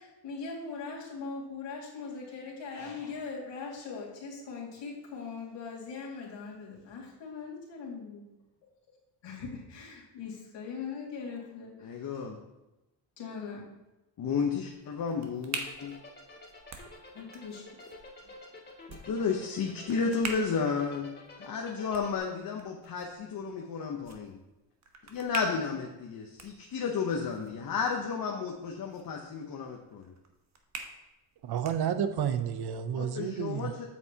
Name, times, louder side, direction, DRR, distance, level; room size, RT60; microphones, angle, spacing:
voice 1, 0.0-8.2 9.2-11.9 13.2-13.7 17.1-17.7, left 5 dB, 80° left, -3 dB, 2.3 m, -40 dB
voice 2, 11.8-12.4 14.2-15.9 19.1-21.1 21.4-24.4 25.1-30.1 33.0-33.9, left 5 dB, 50° left, 1 dB, 0.9 m, -32 dB
sound 1, 14.6-32.3, right 3 dB, 40° right, 1.1 m, -47 dB
sound 2, 15.5-22.2, left 2 dB, 25° left, 2.2 m, -49 dB
voice 3, 31.4-33.7, right 8 dB, 60° right, 10 dB, 0.8 m, -31 dB
8.2 x 7.2 x 2.9 m, 1.0 s
cardioid pair, 105°, 43 cm